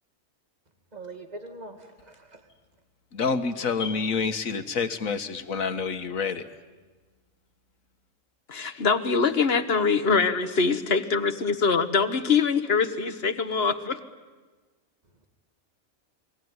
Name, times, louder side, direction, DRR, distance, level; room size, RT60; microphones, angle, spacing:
voice 1, 0.9-2.4, right 2 dB, 30° right, 7 dB, 2.3 m, -42 dB
voice 2, 3.1-6.4, left 5 dB, 80° left, 9 dB, 1.8 m, -28 dB
voice 3, 8.5-14.0, left 5 dB, 50° left, 11 dB, 1.5 m, -23 dB
28.5 x 22.0 x 9.6 m, 1.3 s
omnidirectional pair, 1.4 m